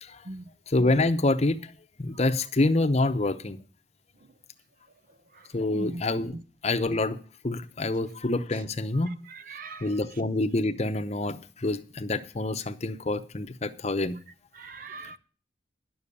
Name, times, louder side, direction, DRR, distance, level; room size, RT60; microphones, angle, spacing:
voice 1, 0.7-1.7 2.0-3.6 5.5-6.3 6.6-7.2 7.4-9.1 9.8-14.2, left 2 dB, 35° left, 0.8 m, -26 dB
voice 2, 9.3-9.9 14.5-15.2, right 2 dB, 50° right, 0.7 m, -40 dB
10.5 x 6.9 x 8.6 m
head